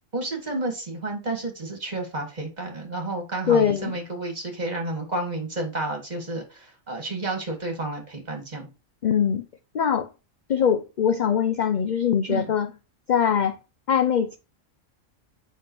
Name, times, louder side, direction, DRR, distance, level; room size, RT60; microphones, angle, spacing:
voice 1, 0.1-8.7 12.3-12.5, right 2 dB, 35° right, 2.0 m, -31 dB
voice 2, 3.5-4.0 9.0-9.4 9.7-10.1 10.5-12.7 13.1-13.6 13.9-14.4, left 7 dB, 60° left, 0.5 m, -22 dB
7.8 x 5.6 x 3.1 m
omnidirectional pair, 1.3 m